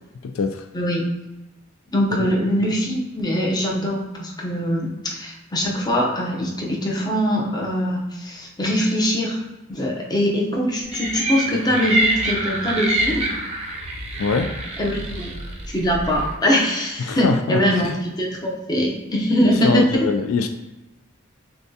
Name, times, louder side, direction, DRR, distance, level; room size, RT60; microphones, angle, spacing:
voice 1, 0.2-0.6 2.2-2.3 14.2-14.5 17.0-17.9 19.4-20.5, left 4 dB, 80° left, 7 dB, 0.4 m, -23 dB
voice 2, 0.7-1.1 1.9-9.4 9.7-13.3 14.8-15.3 15.7-20.1, equal, 20° left, -2 dB, 0.7 m, -22 dB
sound 1, 10.9-16.3, right 1 dB, 30° right, 0.6 m, -26 dB
6.8 x 2.3 x 2.7 m, 1.0 s
head